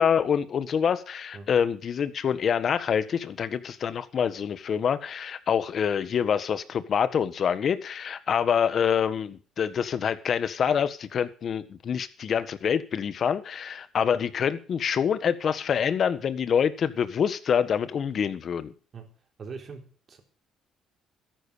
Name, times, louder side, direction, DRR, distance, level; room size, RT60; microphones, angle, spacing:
voice 1, 0.0-18.7, left 7 dB, 50° left, 1.5 m, -26 dB
voice 2, 19.4-20.2, right 5 dB, 45° right, 4.1 m, -42 dB
13.5 x 11.0 x 6.7 m
cardioid pair, 90°, 0 cm